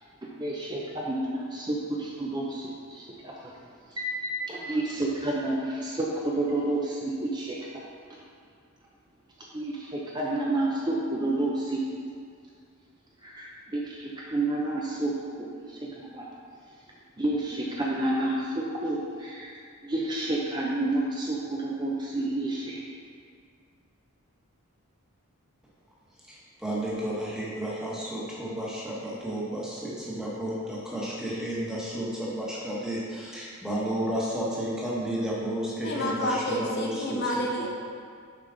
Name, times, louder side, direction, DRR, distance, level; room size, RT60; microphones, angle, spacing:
voice 1, 0.2-3.5 3.9-7.8 9.5-11.8 13.2-16.3 17.2-19.6 19.8-22.8, right 2 dB, 20° right, -4 dB, 0.5 m, -30 dB
voice 2, 26.6-30.5 30.9-32.1 32.4-33.0 33.6-37.2, right 1 dB, 5° right, -6 dB, 1.1 m, -31 dB
voice 3, 35.8-37.7, left 1 dB, 45° left, -1 dB, 0.7 m, -29 dB
6.9 x 5.0 x 3.8 m, 2.1 s
head